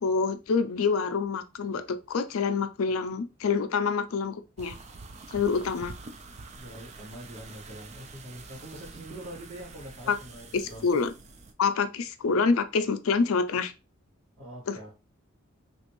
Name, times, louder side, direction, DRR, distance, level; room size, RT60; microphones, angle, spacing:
voice 1, 0.0-4.8 5.3-5.9 10.1-10.2 10.5-11.1 11.6-13.7 14.7-14.8, left 5 dB, 85° left, 0.4 m, -27 dB
sound 1, 4.6-11.5, right 3 dB, 30° right, 0.3 m, -46 dB
voice 2, 6.6-11.0 14.4-15.0, right 1 dB, 80° right, 2.0 m, -44 dB
3.3 x 2.5 x 2.9 m
head